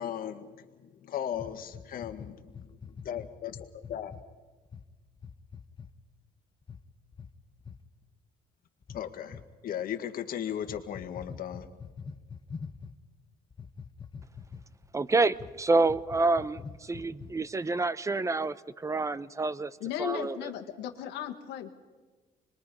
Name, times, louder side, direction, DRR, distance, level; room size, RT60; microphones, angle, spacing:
voice 1, 0.0-2.8 3.0-3.6 3.9-4.2 8.9-11.7, left 10 dB, 60° left, 7 dB, 1.7 m, -37 dB
sound 1, 1.3-4.2 4.7-4.8 5.2-5.9 6.6-6.8 7.1-7.3 7.6-7.8 8.8-9.4 10.6-12.9 13.5-14.9 15.3-15.5 15.8-17.5, left 5 dB, 30° left, 1.0 m, -44 dB
voice 2, 14.9-19.7 20.0-20.5, right 3 dB, 20° right, 17 dB, 0.6 m, -28 dB
voice 3, 19.8-21.7, left 11 dB, 90° left, 4 dB, 1.4 m, -36 dB
25.5 x 21.5 x 5.4 m, 1.3 s
cardioid pair, 110°, 17 cm